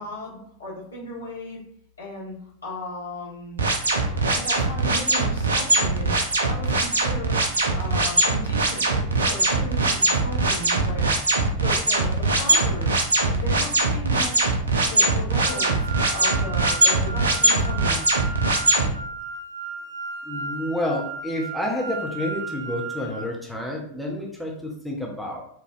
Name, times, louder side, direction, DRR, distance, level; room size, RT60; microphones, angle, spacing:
voice 1, 0.0-1.6 2.0-2.3 2.6-3.7 4.1-6.1 6.4-7.4 7.8-13.0 13.3-14.6 14.9-15.8 16.1-18.2, left 2 dB, 75° left, -4 dB, 1.4 m, -36 dB
sound 1, 3.6-18.9, right 2 dB, 70° right, 0.5 m, -21 dB
sound 2, 15.4-23.2, right 3 dB, 85° right, 1.1 m, -35 dB
voice 2, 20.3-25.4, left 1 dB, ahead, -1 dB, 0.7 m, -29 dB
4.8 x 2.7 x 2.6 m, 0.65 s
figure-of-eight pair, 90°, 0 cm